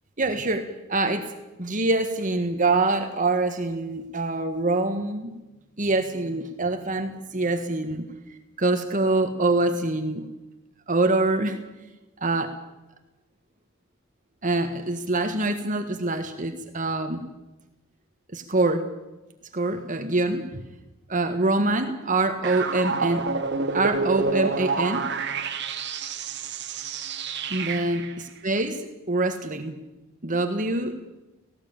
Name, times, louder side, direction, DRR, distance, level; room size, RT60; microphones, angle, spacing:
voice 1, 0.2-1.3 1.6-5.3 5.8-8.0 8.6-10.3 10.9-11.6 12.2-12.5 14.4-17.2 18.3-18.9 19.5-20.6 21.1-23.3 23.7-25.1 27.5-28.0 28.4-29.8 30.2-30.9, right 2 dB, 40° right, 6 dB, 1.7 m, -25 dB
sound 1, 22.4-28.1, right 4 dB, 60° right, 2.0 m, -28 dB
18.5 x 16.5 x 8.9 m, 1.0 s
head